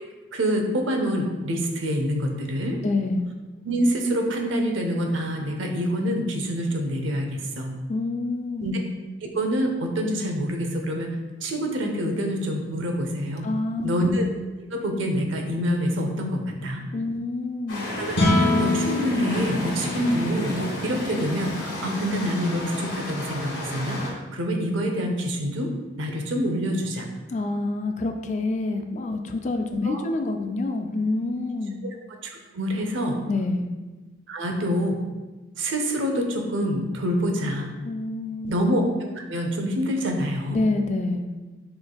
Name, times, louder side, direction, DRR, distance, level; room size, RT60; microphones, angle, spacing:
voice 1, 0.3-2.8 3.6-7.7 8.6-8.8 9.3-13.5 13.8-14.3 14.7-16.8 18.0-24.0 24.3-25.7 26.0-27.1 29.8-30.0 32.2-33.2 34.3-35.0 35.6-37.7 38.5-38.8 39.1-40.6, equal, 75° right, 3 dB, 0.7 m, -26 dB
voice 2, 2.8-3.3 7.9-8.7 13.4-14.1 16.9-17.9 27.3-31.8 33.3-33.7 37.8-38.5 40.5-41.3, left 2 dB, 35° left, 5 dB, 0.3 m, -27 dB
sound 1, 17.7-24.1, left 1 dB, 85° left, 1.4 m, -33 dB
sound 2, 18.1-24.5, left 1 dB, 65° left, 1.1 m, -28 dB
6.0 x 3.3 x 2.3 m, 1.2 s
head